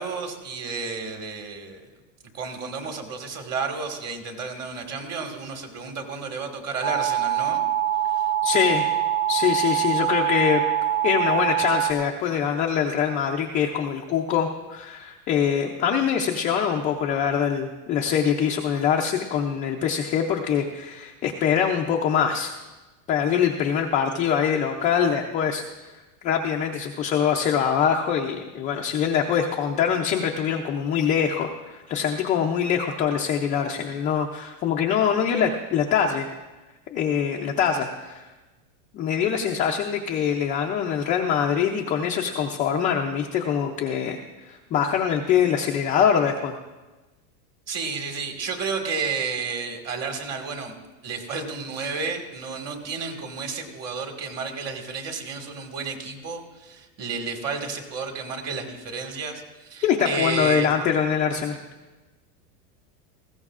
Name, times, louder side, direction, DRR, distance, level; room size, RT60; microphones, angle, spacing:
voice 1, 0.0-1.9 2.3-7.6 8.1-8.3 47.7-50.7 51.0-60.7, right 5 dB, 35° right, 4 dB, 1.8 m, -32 dB
sound 1, 6.8-11.9, right 11 dB, 85° right, 2.0 m, -24 dB
voice 2, 8.4-8.9 9.3-10.6 11.0-22.5 23.1-25.6 26.2-36.3 36.9-38.2 38.9-44.2 44.5-46.6 59.8-61.6, left 8 dB, 20° left, 0 dB, 0.3 m, -24 dB
19.5 x 16.0 x 2.4 m, 1.2 s
supercardioid pair, 140°, 46 cm